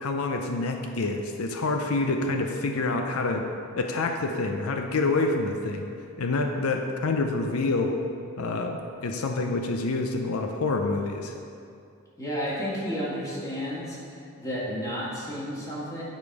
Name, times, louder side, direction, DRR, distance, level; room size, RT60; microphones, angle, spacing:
voice 1, 0.0-3.5 3.8-5.9 6.2-8.0 8.4-11.3, left 3 dB, 85° left, 4 dB, 0.6 m, -27 dB
voice 2, 12.2-16.0, equal, 15° left, -7 dB, 1.9 m, -32 dB
9.2 x 5.1 x 4.7 m, 2.5 s
head